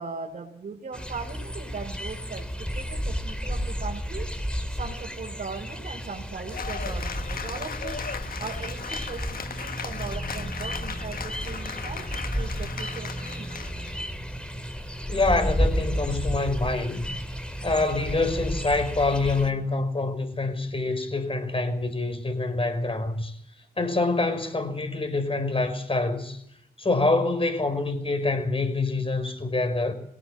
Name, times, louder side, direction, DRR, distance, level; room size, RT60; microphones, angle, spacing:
voice 1, 0.0-4.3 4.7-8.0 8.4-13.7, right 4 dB, 60° right, 3.9 m, -39 dB
sound 1, 0.9-19.5, equal, 5° left, 3.2 m, -32 dB
Cheering / Applause, 6.5-14.0, left 6 dB, 60° left, 1.3 m, -37 dB
voice 2, 15.1-17.1 17.6-23.4 23.8-26.4 26.8-29.9, left 3 dB, 35° left, 5.6 m, -26 dB
19.5 x 17.5 x 7.6 m
supercardioid pair, 50°, 17 cm